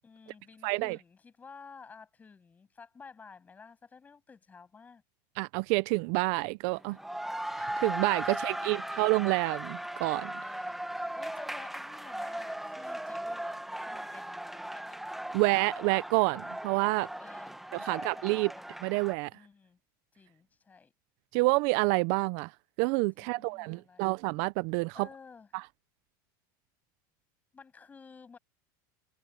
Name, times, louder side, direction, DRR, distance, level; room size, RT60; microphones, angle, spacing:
voice 1, 0.0-5.0 6.8-7.0 8.3-9.1 10.4-15.0 17.2-18.5 19.3-19.8 20.1-20.9 23.2-24.2 24.9-25.5 27.5-28.4, left 5 dB, 15° left, 7.5 m, -53 dB
voice 2, 0.6-1.0 5.4-7.0 7.5-10.3 15.3-17.1 17.7-18.5 18.8-19.3 21.3-22.5 22.8-25.1 25.5-25.6, right 25 dB, 55° right, 0.4 m, -28 dB
sound 1, 6.8-19.1, right 1 dB, ahead, 1.0 m, -38 dB
supercardioid pair, 155°, 11 cm